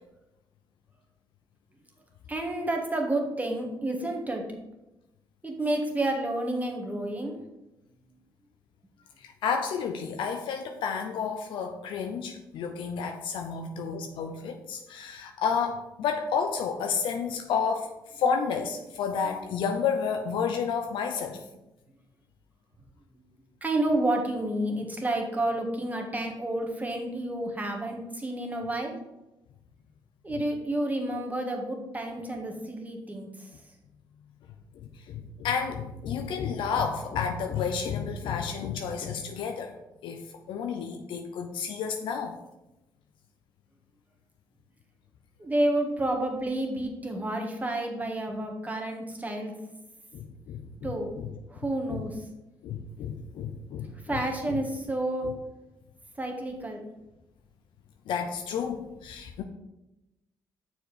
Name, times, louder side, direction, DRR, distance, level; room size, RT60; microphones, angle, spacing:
voice 1, 2.3-4.4 5.4-7.3 23.6-29.0 30.2-33.5 45.4-49.5 50.8-51.1 51.5-52.3 54.0-55.3 56.2-56.8, right 1 dB, 20° right, 2 dB, 1.6 m, -30 dB
voice 2, 9.2-21.4 34.7-39.7 40.0-40.2 40.5-42.4 50.1-50.7 51.2-51.3 51.9-52.0 52.6-54.2 58.1-59.4, left 6 dB, 85° left, 5 dB, 0.6 m, -31 dB
6.6 x 4.7 x 5.0 m, 0.97 s
cardioid pair, 80°, 8 cm